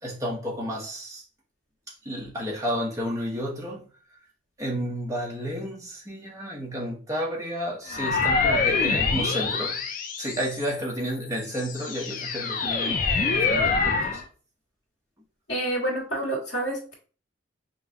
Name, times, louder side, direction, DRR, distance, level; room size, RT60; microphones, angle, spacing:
voice 1, 0.0-1.2 1.9-3.9 4.6-9.8 10.2-14.2, equal, 15° right, 1.0 m, -31 dB
sound 1, 7.9-10.8 11.4-14.2, left 4 dB, 45° left, 0.5 m, -25 dB
voice 2, 15.5-16.9, right 1 dB, 85° left, 1.8 m, -28 dB
5.5 x 2.3 x 2.8 m
head